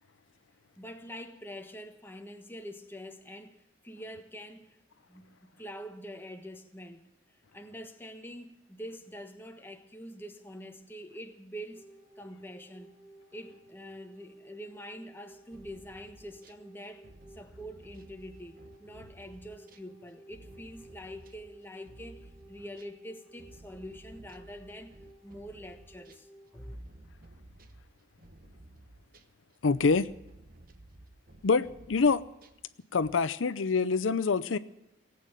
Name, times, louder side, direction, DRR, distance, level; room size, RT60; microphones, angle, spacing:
voice 1, 0.8-4.8 5.1-7.0 7.5-11.8 12.2-13.0 13.3-17.1 17.3-26.3 26.5-26.8, equal, 10° left, 1.3 m, -45 dB
sound 1, 11.7-26.8, right 1 dB, 20° right, 1.6 m, -55 dB
sound 2, 15.3-16.6 17.0-23.0 23.4-32.7 33.0-33.1, right 1 dB, 50° right, 1.1 m, -55 dB
voice 2, 29.6-30.1 31.4-32.2 32.9-34.6, left 4 dB, 85° left, 0.6 m, -25 dB
18.5 x 8.7 x 8.9 m
head